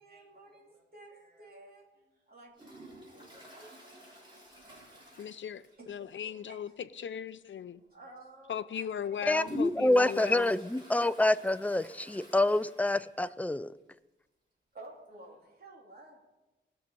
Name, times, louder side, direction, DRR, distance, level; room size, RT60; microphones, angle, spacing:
voice 1, 0.0-5.0 5.7-6.7 7.9-9.5 11.7-11.8 12.1-12.2 12.8-13.3 14.7-16.2, right 2 dB, 50° right, 2.8 m, -54 dB
Toilet flush, 2.5-6.0 6.3-6.4 6.8-6.9 7.7-7.9 8.4-13.3 13.6-13.7 13.9-14.0 15.1-15.2, right 2 dB, 25° right, 4.0 m, -52 dB
voice 2, 5.2-5.6 5.9-6.7 7.0-7.8 8.5-10.5, left 8 dB, 75° left, 0.5 m, -37 dB
voice 3, 9.3-13.7, left 2 dB, 5° left, 0.3 m, -27 dB
18.5 x 6.4 x 5.4 m
wide cardioid pair, 140°, 20 cm